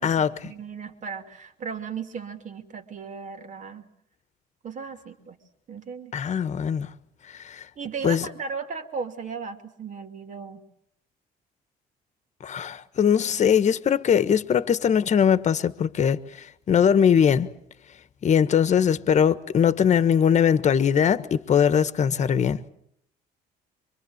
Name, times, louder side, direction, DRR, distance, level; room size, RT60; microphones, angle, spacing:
voice 1, 0.0-3.9 4.6-5.4 5.7-6.1 7.8-10.6, right 6 dB, 50° right, 2.9 m, -36 dB
voice 2, 6.1-6.9 7.4-7.6 8.0-8.3 12.4-17.5 18.2-22.6, left 8 dB, 45° left, 1.3 m, -21 dB
25.0 x 24.0 x 8.0 m
cardioid pair, 110°, 17 cm